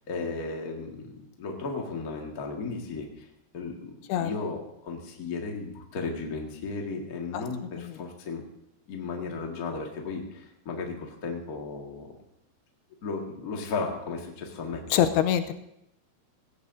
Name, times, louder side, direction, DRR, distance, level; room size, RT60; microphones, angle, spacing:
voice 1, 0.1-3.1 3.5-8.5 8.9-12.1 13.0-14.8, left 4 dB, 40° left, 0 dB, 1.2 m, -35 dB
voice 2, 14.9-15.6, left 10 dB, 85° left, 9 dB, 2.6 m, -24 dB
17.0 x 16.5 x 2.7 m, 0.79 s
omnidirectional pair, 4.6 m